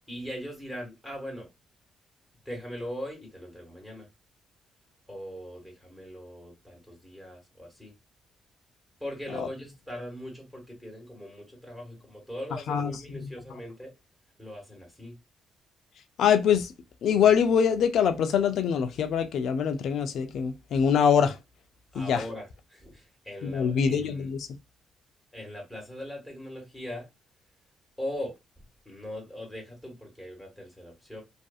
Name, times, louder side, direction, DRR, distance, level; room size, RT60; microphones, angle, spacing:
voice 1, 0.1-1.5 2.4-4.1 5.1-7.9 9.0-13.9 14.4-15.2 21.9-24.3 25.3-27.1 28.0-28.3 28.8-31.2, equal, 5° left, 1.4 m, -40 dB
voice 2, 16.2-16.7 17.0-21.4 22.0-22.2 23.4-24.5, left 7 dB, 70° left, 0.4 m, -24 dB
2.5 x 2.5 x 2.3 m
cardioid pair, 90°, 0 cm